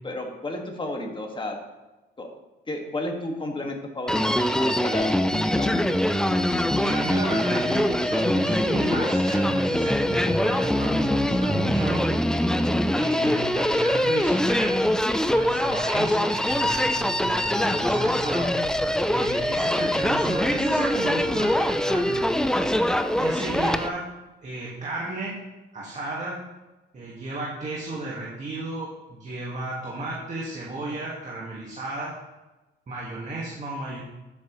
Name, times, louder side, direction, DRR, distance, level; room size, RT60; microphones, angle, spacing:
voice 1, 0.0-1.6 2.2-2.3 2.7-5.8, left 1 dB, 25° left, 1 dB, 1.9 m, -32 dB
Human voice, 4.1-23.9, left 1 dB, 5° left, 0.4 m, -23 dB
voice 2, 6.8-12.0 12.9-14.8 15.3-22.5 23.2-24.1 24.4-25.4 25.7-26.4 26.9-32.2 32.9-34.0, right 2 dB, 35° right, -4 dB, 1.8 m, -33 dB
12.0 x 7.4 x 3.1 m, 1.1 s
cardioid pair, 90°, 20 cm